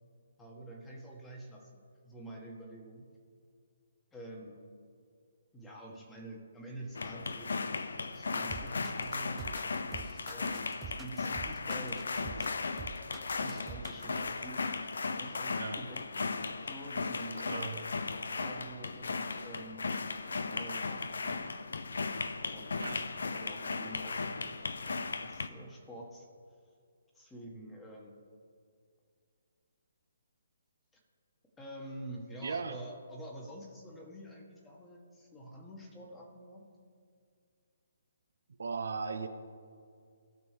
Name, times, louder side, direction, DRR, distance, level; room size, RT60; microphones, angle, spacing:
voice 1, 0.4-1.7 2.0-3.0 4.1-4.7 5.5-7.6 8.1-9.5 9.9-12.5 13.3-14.7 15.0-16.0 16.6-18.0 18.4-19.9 20.5-21.5 22.5-23.0 23.3-24.5 25.2-26.3 27.1-28.2 30.9-31.0 31.6-36.7, right 1 dB, 10° left, -1 dB, 1.7 m, -47 dB
sound 1, 6.9-25.5, left 4 dB, 70° left, 0.6 m, -36 dB
sound 2, 8.5-14.2, right 6 dB, 15° right, 0.5 m, -46 dB
voice 2, 17.5-17.8 22.8-23.0 32.4-32.8 38.6-39.3, right 5 dB, 70° right, 8 dB, 0.7 m, -37 dB
17.0 x 6.1 x 3.4 m, 2.2 s
figure-of-eight pair, 140°, 0 cm